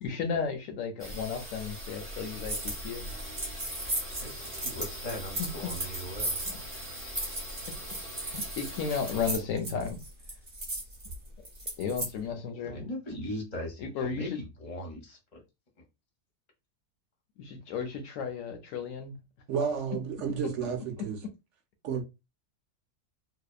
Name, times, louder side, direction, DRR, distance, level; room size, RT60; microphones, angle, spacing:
voice 1, 0.0-3.1 6.5-6.6 8.2-10.0 11.8-12.8 13.8-14.4 17.4-19.2 20.4-20.5 21.0-21.1, left 6 dB, 70° left, 0.8 m, -34 dB
sound 1, 1.0-9.4, equal, 20° right, 0.4 m, -41 dB
sound 2, 2.4-2.8 3.1-12.1, right 1 dB, 35° right, 0.8 m, -36 dB
voice 2, 4.2-6.4 12.7-13.9 14.1-15.4, left 1 dB, 35° left, 0.6 m, -39 dB
voice 3, 19.5-21.2 21.8-22.0, right 6 dB, 65° right, 0.8 m, -31 dB
2.7 x 2.0 x 2.3 m
omnidirectional pair, 1.6 m